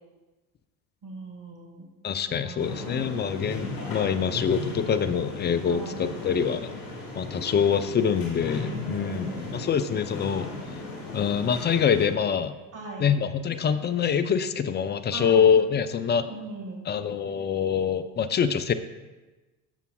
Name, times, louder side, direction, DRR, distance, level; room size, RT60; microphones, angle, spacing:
voice 1, 1.0-1.9 2.3-3.3 5.7-6.1 8.6-9.7 12.7-13.1 15.1-15.5 16.3-16.9, right 3 dB, 40° right, 1 dB, 1.8 m, -39 dB
voice 2, 2.0-6.6 7.1-10.5 11.1-12.5 13.0-16.2 16.9-18.7, left 7 dB, 25° left, 12 dB, 0.4 m, -25 dB
sound 1, 2.6-12.1, left 3 dB, 70° left, 2.8 m, -36 dB
13.0 x 6.8 x 2.3 m, 1.2 s
hypercardioid pair, 70°, 47 cm